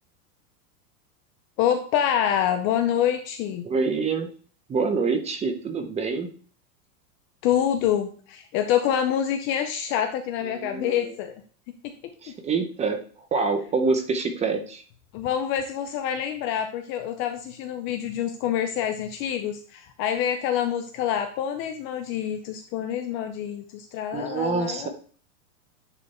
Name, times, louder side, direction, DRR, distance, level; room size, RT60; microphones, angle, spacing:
voice 1, 1.6-3.6 7.4-11.4 11.8-11.9 15.1-24.9, left 9 dB, 30° left, 6 dB, 0.5 m, -26 dB
voice 2, 3.6-4.3 4.7-6.3 10.4-11.1 12.2-13.0 13.3-14.8 24.1-24.9, right 4 dB, 15° right, 7 dB, 0.8 m, -26 dB
9.9 x 3.3 x 4.1 m, 0.43 s
supercardioid pair, 145°, 44 cm